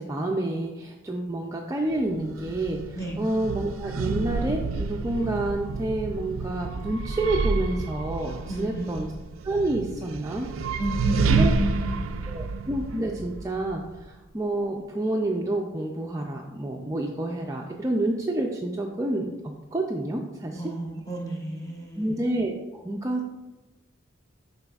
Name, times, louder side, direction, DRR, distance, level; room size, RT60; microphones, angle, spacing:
voice 1, 0.0-9.1 9.4-10.5 11.3-11.5 12.3-19.3 19.7-20.6 22.0-23.3, right 1 dB, 15° right, 0 dB, 0.4 m, -29 dB
sound 1, 1.9-14.1, right 4 dB, 80° right, 0.4 m, -30 dB
voice 2, 8.5-9.0 10.8-12.5 20.5-22.2, right 1 dB, 15° left, -1 dB, 1.0 m, -31 dB
12.0 x 4.1 x 2.4 m, 1.1 s
head